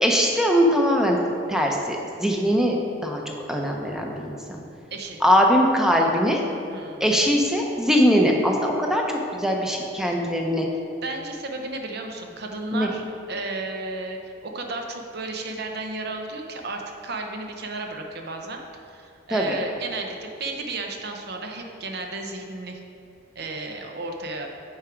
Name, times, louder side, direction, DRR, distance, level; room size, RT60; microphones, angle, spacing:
voice 1, 0.0-1.2 1.5-2.8 3.0-4.6 5.2-6.4 7.0-10.7 12.7-12.9 19.3-19.6, equal, 5° right, 0 dB, 0.6 m, -21 dB
voice 2, 4.9-5.2 6.7-7.1 10.1-10.2 11.0-22.8 23.3-24.5, right 2 dB, 55° right, 3 dB, 0.7 m, -33 dB
7.4 x 4.8 x 4.5 m, 2.6 s
head